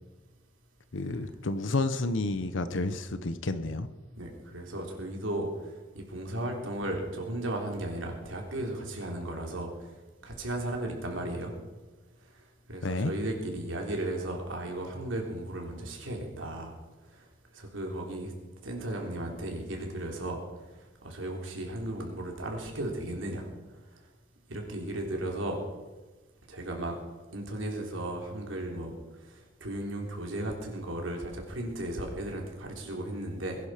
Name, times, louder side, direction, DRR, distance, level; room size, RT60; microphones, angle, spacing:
voice 1, 0.9-3.9 12.8-13.1, left 2 dB, 70° left, 11 dB, 0.9 m, -30 dB
voice 2, 4.2-5.5 5.9-9.7 10.2-11.5 12.7-16.7 17.5-18.3 18.6-20.4 21.0-23.5 24.5-25.6 26.5-27.0 27.3-28.9 29.3-33.6, right 1 dB, 80° right, 1 dB, 3.8 m, -35 dB
21.5 x 11.0 x 5.0 m, 1.2 s
head